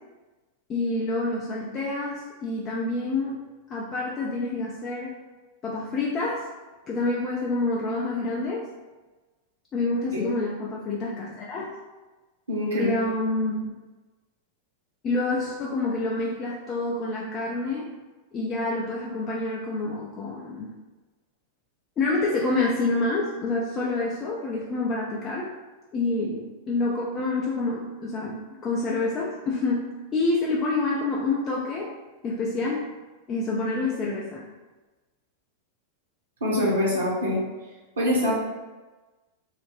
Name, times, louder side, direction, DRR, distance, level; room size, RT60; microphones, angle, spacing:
voice 1, 0.7-3.4 3.7-5.1 5.6-6.5 6.9-8.7 9.7-11.7 12.8-13.7 15.0-17.9 18.3-20.7 22.0-25.5 25.9-28.4 28.6-31.9 32.2-32.9 33.3-34.4, left 2 dB, 30° left, -5 dB, 0.4 m, -27 dB
voice 2, 12.5-12.9 36.4-37.4 38.0-38.3, left 1 dB, 65° right, -5 dB, 0.7 m, -24 dB
2.3 x 2.0 x 3.3 m, 1.2 s
figure-of-eight pair, 90°, 0 cm